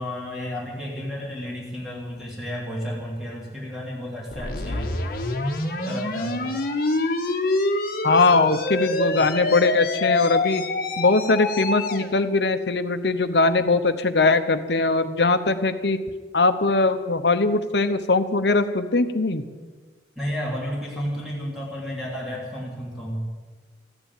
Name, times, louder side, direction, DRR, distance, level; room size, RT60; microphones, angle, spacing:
voice 1, 0.0-4.9 5.8-6.5 20.1-23.3, equal, ahead, -5 dB, 3.2 m, -32 dB
sound 1, 4.3-12.1, left 2 dB, 55° left, 1.5 m, -26 dB
voice 2, 8.0-10.6 11.0-16.0 16.3-19.4, left 3 dB, 70° left, 10 dB, 1.0 m, -21 dB
14.0 x 9.9 x 9.0 m, 1.4 s
head